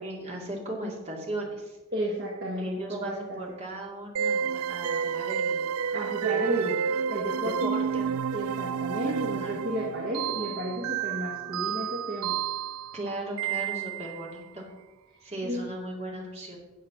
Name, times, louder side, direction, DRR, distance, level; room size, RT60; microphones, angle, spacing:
voice 1, 0.0-1.8 2.6-5.8 6.2-6.7 7.4-8.0 9.1-9.6 12.9-14.6 15.2-16.6, right 1 dB, 30° right, -2 dB, 2.5 m, -37 dB
voice 2, 1.9-3.4 5.9-6.8 7.1-12.4 15.4-15.7, equal, 45° right, -4 dB, 1.7 m, -33 dB
sound 1, 4.2-14.3, right 8 dB, 80° right, 0.3 m, -30 dB
9.8 x 7.3 x 6.0 m, 1.1 s
head